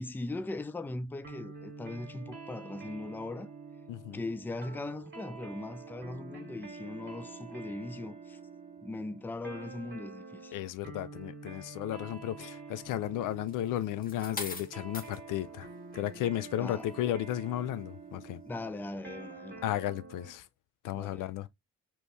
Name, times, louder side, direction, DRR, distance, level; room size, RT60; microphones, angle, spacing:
voice 1, 0.0-3.5 4.1-8.4 8.8-10.6 16.6-16.9 18.4-19.6 20.9-21.3, left 2 dB, 5° left, 0.4 m, -39 dB
sound 1, 1.2-20.4, right 4 dB, 35° right, 1.5 m, -47 dB
voice 2, 10.5-15.7 15.9-18.4 19.6-20.4 20.8-21.5, left 13 dB, 75° left, 0.5 m, -34 dB
sound 2, 13.5-15.2 15.9-16.2, left 3 dB, 25° left, 1.0 m, -41 dB
3.0 x 2.6 x 3.3 m
supercardioid pair, 65°, 32 cm